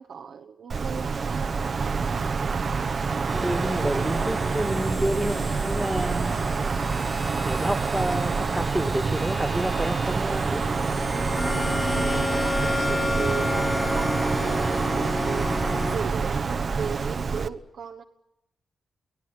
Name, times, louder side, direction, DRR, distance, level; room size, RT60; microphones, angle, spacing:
voice 1, 0.0-2.0 11.9-15.6 15.9-18.0, right 6 dB, 70° right, 1 dB, 1.1 m, -36 dB
Wind, 0.7-17.5, right 5 dB, 50° right, 1.0 m, -27 dB
sound 1, 3.3-16.0, left 1 dB, 20° left, 3.0 m, -31 dB
voice 2, 3.4-6.4 7.4-10.6, right 1 dB, 5° right, 8 dB, 2.1 m, -29 dB
24.0 x 17.5 x 9.4 m, 0.88 s
cardioid pair, 80°, 0 cm